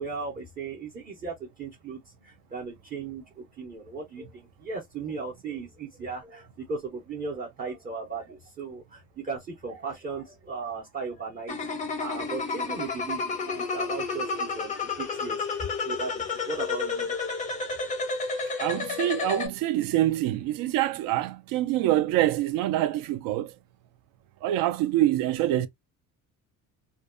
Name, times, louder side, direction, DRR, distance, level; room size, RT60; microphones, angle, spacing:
voice 1, 0.0-11.6 12.0-15.4 15.9-17.2, right 4 dB, 25° right, 0.5 m, -37 dB
sound 1, 11.5-19.5, left 4 dB, 25° left, 0.4 m, -31 dB
voice 2, 18.6-23.5 24.4-25.7, right 14 dB, 85° right, 0.5 m, -25 dB
2.5 x 2.2 x 2.3 m
cardioid pair, 170°, 33 cm